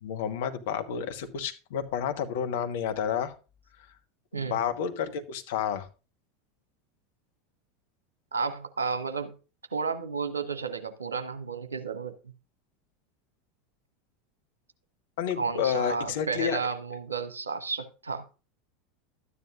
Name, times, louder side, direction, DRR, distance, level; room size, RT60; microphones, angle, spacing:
voice 1, 0.0-3.3 4.3-5.9 15.2-16.6, left 8 dB, 60° left, 1.2 m, -30 dB
voice 2, 8.3-9.4 9.7-12.3 15.4-18.3, right 5 dB, 75° right, 1.2 m, -32 dB
12.5 x 9.8 x 2.4 m
figure-of-eight pair, 80°, 0 cm